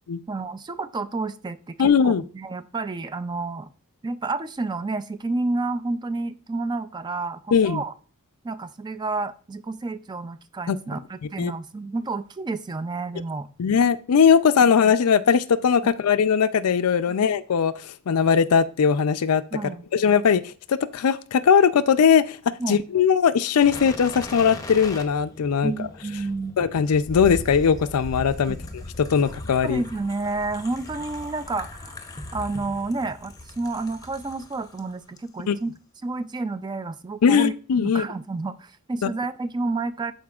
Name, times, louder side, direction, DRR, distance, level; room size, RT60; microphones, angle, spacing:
voice 1, 0.3-3.7 4.0-7.9 8.4-13.5 14.6-14.7 17.1-17.3 19.5-19.9 22.6-22.8 25.6-26.6 28.5-28.6 29.6-31.9 32.3-35.7 36.0-40.1, right 3 dB, 20° right, 12 dB, 0.3 m, -30 dB
voice 2, 1.8-2.2 7.5-7.8 10.7-10.8 11.4-11.5 13.6-17.7 18.1-19.4 19.9-20.4 20.7-22.4 22.7-25.7 26.6-28.6 29.0-29.8 35.5-35.6 37.2-38.0 39.0-39.1, left 6 dB, 80° left, 13 dB, 0.4 m, -19 dB
sound 1, 23.6-34.8 35.2-35.3, left 1 dB, 15° left, 0.7 m, -39 dB
12.5 x 4.4 x 2.4 m, 0.39 s
head